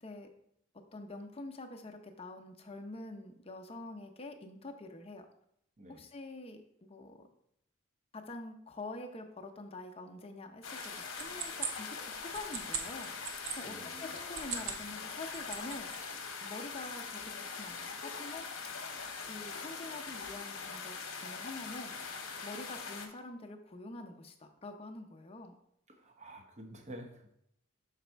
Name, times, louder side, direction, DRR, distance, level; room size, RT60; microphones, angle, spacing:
voice 1, 0.7-5.3 5.9-7.3 8.1-13.3 13.6-13.7 14.0-15.9 16.4-18.5 19.3-21.0 21.2-21.9 22.4-25.5, left 2 dB, 30° left, 4 dB, 0.7 m, -46 dB
sound 1, 10.6-23.1, left 5 dB, 70° left, 1.0 m, -42 dB
sound 2, 10.8-13.6 14.2-14.9 15.2-16.0, right 6 dB, 90° right, 0.8 m, -40 dB
voice 2, 13.6-14.2 25.9-27.3, right 1 dB, 35° right, 3 dB, 0.9 m, -49 dB
6.0 x 4.1 x 4.5 m, 0.73 s
head